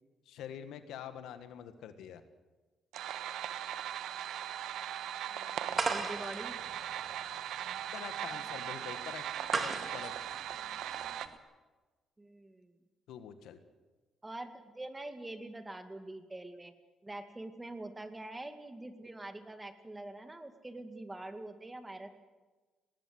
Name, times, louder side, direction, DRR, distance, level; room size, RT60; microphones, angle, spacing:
voice 1, 0.2-2.2 7.9-9.2 9.5-10.1 13.1-13.6, left 9 dB, 85° left, 9 dB, 1.6 m, -45 dB
sound 1, 2.9-11.3, right 10 dB, 80° right, 1.1 m, -39 dB
voice 2, 5.3-6.6 12.2-12.8 14.2-16.7 17.0-22.1, right 2 dB, 15° right, 8 dB, 2.1 m, -45 dB
sound 2, 5.7-11.4, right 4 dB, 35° right, 2.1 m, -38 dB
19.5 x 19.0 x 7.9 m, 1.3 s
cardioid pair, 90°, 0 cm